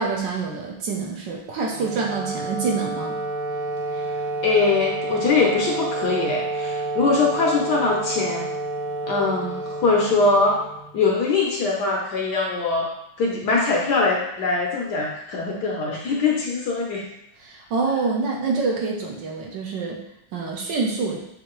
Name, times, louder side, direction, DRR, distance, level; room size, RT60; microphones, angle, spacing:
voice 1, 0.0-3.2 17.4-20.0 20.3-21.2, right 4 dB, 70° right, -1 dB, 1.4 m, -26 dB
Wind instrument woodwind instrument, 1.7-11.0, right 2 dB, 85° right, 1.4 m, -29 dB
voice 2, 4.4-8.5 9.1-10.6 10.9-12.9 13.2-17.0, left 3 dB, 65° left, -2 dB, 1.2 m, -22 dB
6.5 x 2.7 x 3.0 m, 0.83 s
omnidirectional pair, 2.2 m